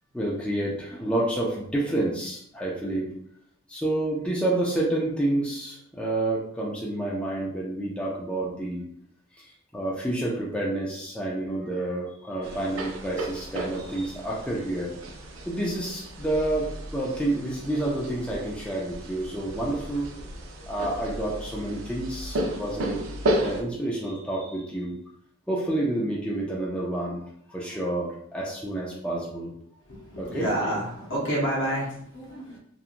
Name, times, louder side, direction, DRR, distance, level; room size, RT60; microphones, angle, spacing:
voice 1, 0.1-3.1 3.7-8.8 9.4-9.5 9.7-14.9 15.5-20.1 20.7-23.0 23.4-24.9 25.5-27.2 27.5-29.5 30.2-30.5, right 1 dB, 5° left, -5 dB, 0.4 m, -29 dB
hammering quiet with neibourhood reverb, 12.4-23.6, right 1 dB, 75° right, 0.5 m, -34 dB
voice 2, 29.9-32.6, right 1 dB, 60° left, -3 dB, 0.9 m, -29 dB
2.9 x 2.3 x 2.5 m, 0.69 s
head